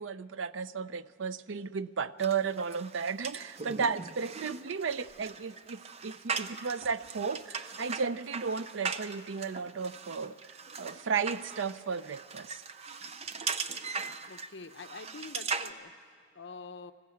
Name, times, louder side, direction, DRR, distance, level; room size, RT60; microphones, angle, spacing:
voice 1, 0.0-12.6, right 5 dB, 90° right, 15 dB, 0.5 m, -34 dB
sound 1, 2.2-15.7, right 5 dB, 35° right, 0.6 m, -39 dB
voice 2, 14.3-16.9, left 4 dB, 70° left, 8 dB, 0.8 m, -46 dB
20.0 x 15.0 x 8.5 m, 2.2 s
head